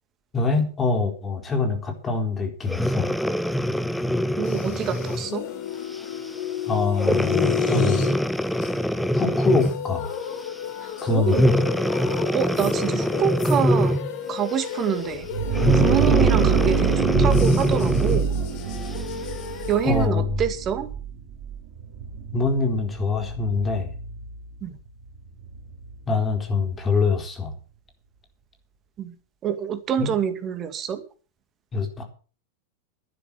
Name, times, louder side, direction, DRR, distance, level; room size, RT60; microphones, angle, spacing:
voice 1, 0.3-3.1 6.7-8.1 9.1-10.1 11.0-11.5 19.8-20.4 22.3-23.9 26.1-27.5 30.0-30.1 31.7-32.0, left 4 dB, 20° left, 5 dB, 4.1 m, -24 dB
Breathing, 2.7-5.3 5.9-6.2 7.0-9.9 11.3-14.2 15.5-18.3 18.9-19.0, equal, ahead, 0.8 m, -23 dB
sound 1, 4.4-20.1, left 9 dB, 45° left, 2.5 m, -33 dB
voice 2, 4.4-5.5 10.8-11.5 12.3-14.0 14.3-15.3 15.7-18.3 19.7-20.9 24.6-24.8 29.0-29.1 29.4-31.0, right 8 dB, 30° right, 10 dB, 2.2 m, -26 dB
sound 2, 15.1-26.7, right 6 dB, 50° right, 3.2 m, -26 dB
11.5 x 10.0 x 7.7 m, 0.38 s
figure-of-eight pair, 90°, 0 cm